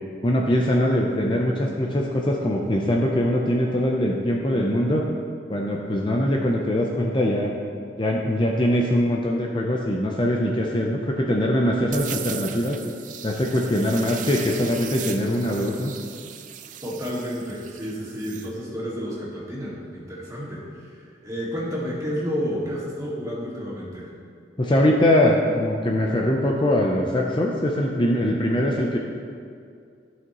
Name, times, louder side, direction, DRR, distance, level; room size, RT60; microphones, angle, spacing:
voice 1, 0.2-5.0 5.5-7.5 8.0-12.8 13.2-15.9 24.6-29.0, left 1 dB, 25° left, -1 dB, 0.6 m, -22 dB
sound 1, 11.9-18.5, right 9 dB, 45° right, 0.4 m, -38 dB
voice 2, 16.8-24.1, equal, 20° right, -7 dB, 2.1 m, -31 dB
14.5 x 6.2 x 3.0 m, 2.3 s
head